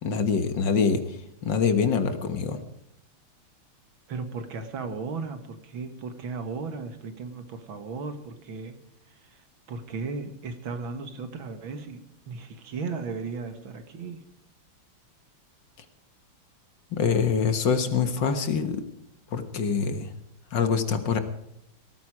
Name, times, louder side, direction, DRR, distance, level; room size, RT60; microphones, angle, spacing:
voice 1, 0.0-2.6 16.9-18.8 19.3-20.1 20.5-21.2, left 6 dB, 60° left, 9 dB, 2.0 m, -25 dB
voice 2, 4.1-8.8 9.0-14.2, right 4 dB, 65° right, 8 dB, 2.4 m, -36 dB
18.5 x 14.0 x 4.9 m, 0.78 s
omnidirectional pair, 2.4 m